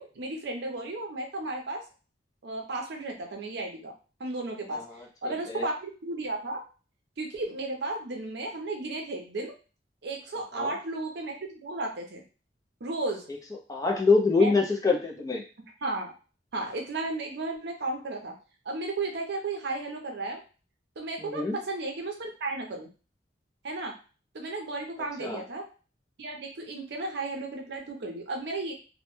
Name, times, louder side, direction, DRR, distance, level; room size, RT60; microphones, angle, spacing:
voice 1, 0.0-1.8 2.4-3.9 4.2-4.8 5.2-6.6 7.2-9.5 10.0-12.2 12.8-13.3 14.4-14.6 15.8-16.1 16.5-18.3 18.6-20.4 21.0-22.9 23.6-24.0 24.3-25.7 26.2-28.7, right 2 dB, 65° right, 1 dB, 0.6 m, -34 dB
voice 2, 4.7-5.1 5.5-5.6 10.6-10.7 13.7-15.4 21.2-21.6 25.2-25.4, left 3 dB, 20° left, 0 dB, 0.4 m, -25 dB
2.1 x 2.1 x 3.0 m, 0.35 s
head